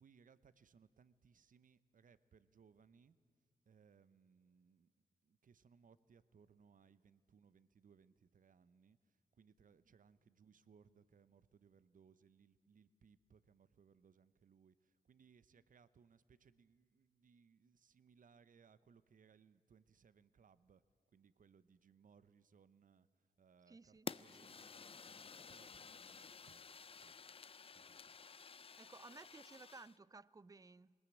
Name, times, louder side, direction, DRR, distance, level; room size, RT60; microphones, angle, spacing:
voice 1, 0.0-3.2 3.7-4.9 5.2-20.8 21.1-26.6 26.9-27.2 27.7-28.2, right 6 dB, 65° right, 0.8 m, -68 dB
voice 2, 23.7-24.1 24.4-24.5 28.8-30.9, right 3 dB, 25° right, 0.5 m, -57 dB
Fire, 24.1-30.0, left 5 dB, 40° left, 0.4 m, -53 dB
20.0 x 19.0 x 8.6 m
cardioid pair, 50°, 15 cm